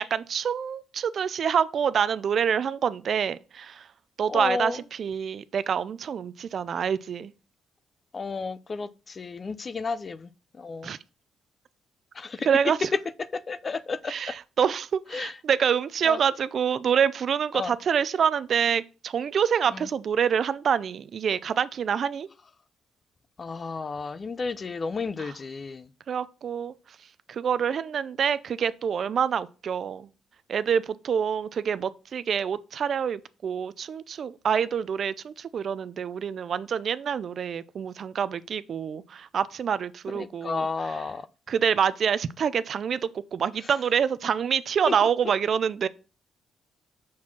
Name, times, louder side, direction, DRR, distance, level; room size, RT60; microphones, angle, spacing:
voice 1, 0.0-3.9 4.2-7.3 10.8-11.0 12.5-12.9 14.1-22.3 25.2-25.3 26.1-26.7 27.3-30.1 30.5-41.0 41.5-45.9, right 7 dB, 55° right, 0.4 m, -26 dB
voice 2, 4.3-4.8 8.1-10.3 10.6-10.9 12.2-12.5 13.3-14.1 15.1-15.3 16.0-16.2 17.5-17.7 23.4-25.9 40.1-41.2 44.9-45.0, left 4 dB, 35° left, 0.5 m, -32 dB
6.2 x 4.2 x 5.8 m
cardioid pair, 90°, 0 cm